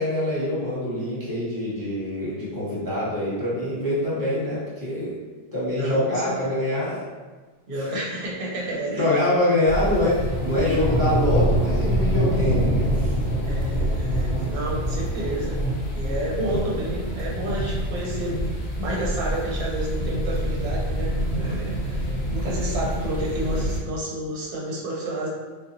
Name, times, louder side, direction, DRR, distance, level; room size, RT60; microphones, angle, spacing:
voice 1, 0.0-5.2 5.5-7.0 7.8-7.9 8.9-13.1, left 1 dB, 20° right, -9 dB, 1.0 m, -25 dB
voice 2, 5.8-6.6 7.7-9.1 13.4-15.6 15.9-18.5 18.8-25.3, right 1 dB, 65° right, -4 dB, 0.8 m, -30 dB
sound 1, 9.7-23.8, equal, 75° left, 0.8 m, -25 dB
2.7 x 2.1 x 2.5 m, 1.3 s
omnidirectional pair, 1.1 m